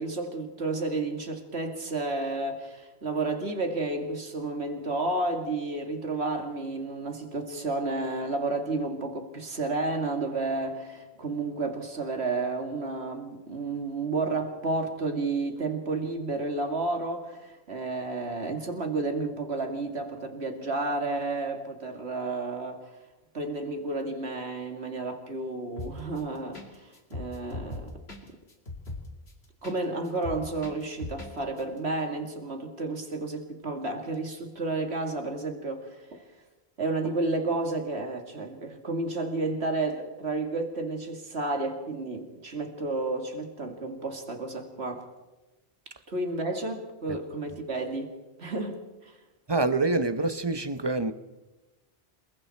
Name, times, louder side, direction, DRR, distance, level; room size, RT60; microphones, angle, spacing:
voice 1, 0.0-22.9 23.3-27.9 29.6-36.2 36.8-45.1 46.1-48.1 48.4-49.2, right 2 dB, 85° right, 2.6 m, -31 dB
sound 1, 25.8-26.2 26.5-26.7 26.9-29.8 30.0-31.3 31.6-31.7, left 2 dB, 75° left, 2.9 m, -38 dB
voice 2, 49.5-51.1, right 3 dB, 25° right, 0.8 m, -26 dB
27.5 x 22.0 x 4.4 m
omnidirectional pair, 1.1 m